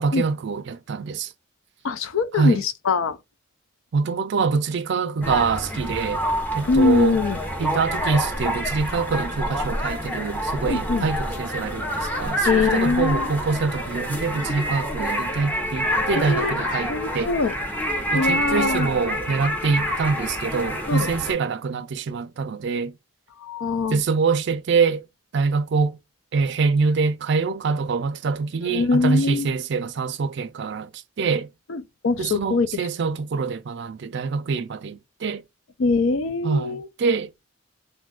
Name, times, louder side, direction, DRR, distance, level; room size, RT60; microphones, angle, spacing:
voice 1, 0.0-1.3 2.3-2.6 3.9-6.2 6.5-7.2 7.6-17.3 18.1-22.9 23.9-25.1 25.3-26.0 26.3-30.9 31.2-31.5 32.2-35.4 36.4-37.4, right 4 dB, 55° right, 0.4 m, -25 dB
voice 2, 1.8-3.2 6.7-7.4 10.7-11.1 12.5-13.3 16.1-16.6 16.9-17.6 18.1-18.9 20.9-21.1 23.4-24.0 28.7-29.5 31.7-32.7 35.8-36.9, left 4 dB, 70° left, 0.5 m, -22 dB
sound 1, 5.2-21.3, equal, 10° left, 0.6 m, -27 dB
2.6 x 2.4 x 3.6 m
head